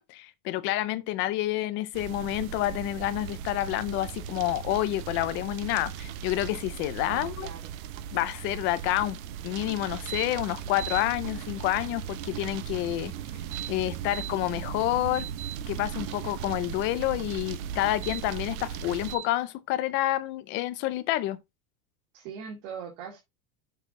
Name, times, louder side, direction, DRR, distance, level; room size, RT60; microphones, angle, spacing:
voice 1, 0.0-7.5 8.1-9.2 9.4-13.1 13.7-15.3 15.7-21.4, left 15 dB, 30° left, 0.4 m, -29 dB
sound 1, 1.9-19.2, right 9 dB, 75° right, 1.0 m, -38 dB
voice 2, 7.1-7.7 22.1-23.2, right 7 dB, 60° right, 2.5 m, -40 dB
sound 2, 10.1-10.3 10.6-11.0 13.3-14.3 14.8-15.6 17.9-18.2 19.1-19.3, right 13 dB, 30° right, 0.8 m, -38 dB
6.9 x 4.4 x 5.7 m
supercardioid pair, 165°, 42 cm